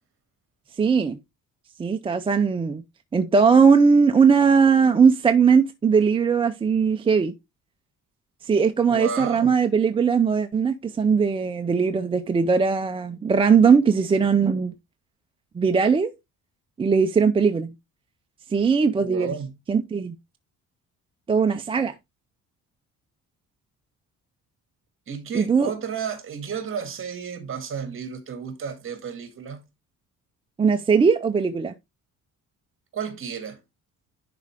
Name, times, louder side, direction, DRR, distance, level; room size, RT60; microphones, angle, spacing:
voice 1, 0.7-1.2 1.8-2.8 3.1-7.3 8.4-14.7 15.5-16.1 16.8-17.7 18.5-19.3 19.7-20.2 21.3-21.9 25.3-25.7 30.6-31.7, right 5 dB, 15° right, 0.4 m, -19 dB
voice 2, 8.9-9.6 19.0-19.5 25.1-29.6 32.9-33.6, right 6 dB, 40° right, 2.0 m, -32 dB
10.5 x 4.8 x 3.4 m
cardioid pair, 180°, 34 cm